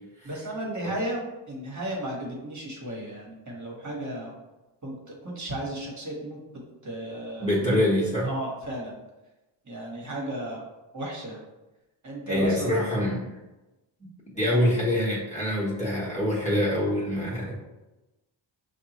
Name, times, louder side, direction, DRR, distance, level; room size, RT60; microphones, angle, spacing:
voice 1, 0.2-4.3 4.8-7.7 8.2-8.9 9.6-10.6 10.9-11.4 12.0-12.7 14.5-14.6, right 1 dB, 35° right, -2 dB, 1.4 m, -34 dB
voice 2, 7.4-8.3 12.3-13.2 14.3-17.5, left 1 dB, 15° left, -7 dB, 1.2 m, -25 dB
5.2 x 2.4 x 3.0 m, 1.0 s
cardioid pair, 80°, 48 cm